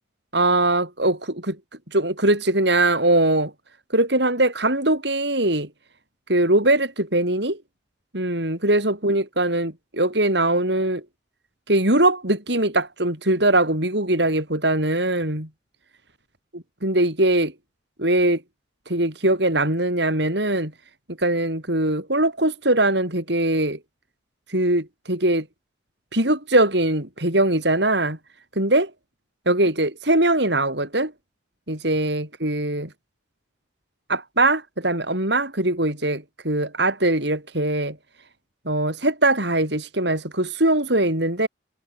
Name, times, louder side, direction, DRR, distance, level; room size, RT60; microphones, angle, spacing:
voice 1, 0.3-1.6 1.9-3.5 3.9-5.7 6.3-7.6 8.1-11.0 11.7-15.5 16.5-17.5 18.0-18.4 18.9-20.7 21.2-23.8 24.5-25.4 26.1-28.2 28.6-28.9 29.5-31.1 31.7-32.9 34.1-38.0 38.7-41.5, right 1 dB, 65° right, 7.7 m, -21 dB
head